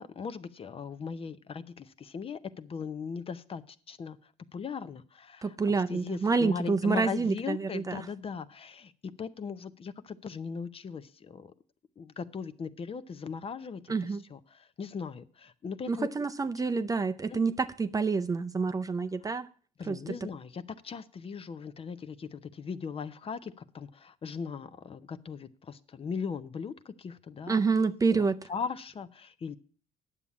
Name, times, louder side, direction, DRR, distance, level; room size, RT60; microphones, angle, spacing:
voice 1, 0.0-5.6 5.9-11.5 12.0-16.1 17.3-17.4 19.8-29.6, left 6 dB, 35° left, 0.7 m, -39 dB
voice 2, 5.4-8.0 13.9-14.2 15.9-19.5 19.9-20.1 27.5-28.4, right 4 dB, 20° right, 0.5 m, -28 dB
9.7 x 7.3 x 8.4 m
cardioid pair, 110°, 17 cm